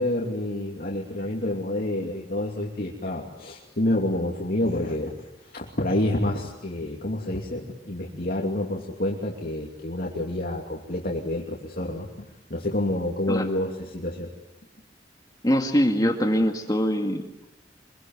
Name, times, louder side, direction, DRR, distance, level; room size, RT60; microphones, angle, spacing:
voice 1, 0.0-12.1 12.5-14.3, left 1 dB, 55° left, -2 dB, 2.9 m, -28 dB
voice 2, 15.4-17.5, equal, 20° left, 3 dB, 2.0 m, -23 dB
26.0 x 23.0 x 9.4 m, 0.96 s
head